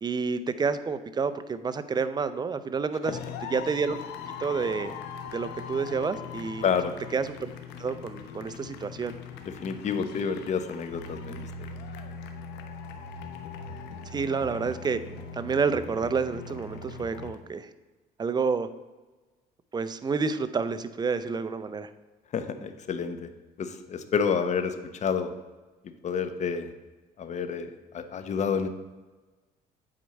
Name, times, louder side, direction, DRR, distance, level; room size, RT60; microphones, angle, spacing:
voice 1, 0.0-3.2 3.5-4.0 4.4-5.0 5.3-6.6 7.1-7.5 7.8-9.1 14.1-15.0 15.3-17.7 18.2-18.7 19.7-21.9, right 5 dB, 25° right, 12 dB, 0.6 m, -29 dB
sound 1, 3.0-17.3, left 6 dB, 90° left, 0.9 m, -41 dB
voice 2, 6.6-6.9 9.5-11.5 22.3-23.3 23.6-25.3 26.0-26.7 27.2-28.7, left 6 dB, 45° left, 9 dB, 0.9 m, -29 dB
8.6 x 4.5 x 6.5 m, 1.2 s
cardioid pair, 110°, 17 cm